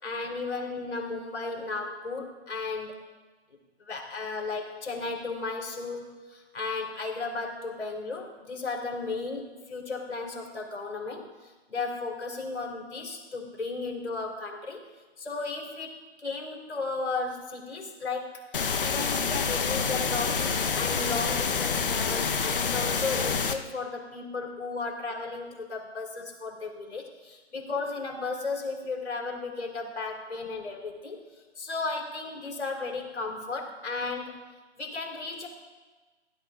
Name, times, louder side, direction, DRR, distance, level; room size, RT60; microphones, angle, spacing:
voice 1, 0.0-3.0 3.8-14.8 15.2-31.2 31.6-34.4 34.8-35.5, left 3 dB, 75° left, 1 dB, 4.1 m, -35 dB
sound 1, 18.5-23.5, left 5 dB, 50° left, 1.1 m, -27 dB
17.5 x 16.0 x 2.6 m, 1.3 s
hypercardioid pair, 165°, 34 cm